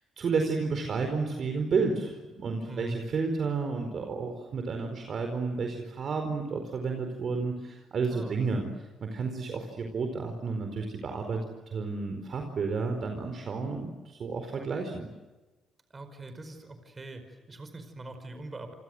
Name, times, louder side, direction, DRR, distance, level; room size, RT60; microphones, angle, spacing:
voice 1, 0.0-8.7 9.0-11.4 11.7-15.1, right 4 dB, 55° right, 5 dB, 4.6 m, -31 dB
voice 2, 2.7-3.0 8.1-8.3 15.9-18.7, right 2 dB, 30° right, 8 dB, 5.0 m, -42 dB
29.0 x 25.0 x 7.9 m, 1.1 s
cardioid pair, 90°, 0 cm